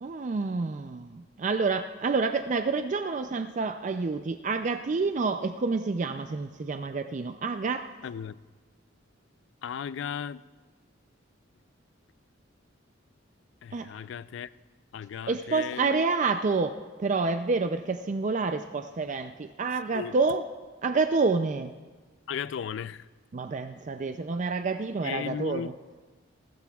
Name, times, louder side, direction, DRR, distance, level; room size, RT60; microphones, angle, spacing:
voice 1, 0.0-7.9 13.7-13.9 15.3-20.5 20.8-21.7 23.3-25.7, right 4 dB, 40° right, 0.4 m, -28 dB
voice 2, 8.0-8.4 9.6-10.4 13.6-14.5 14.9-16.0 19.9-20.2 22.3-23.0 25.0-25.7, left 7 dB, 70° left, 0.3 m, -35 dB
29.5 x 13.0 x 2.3 m
head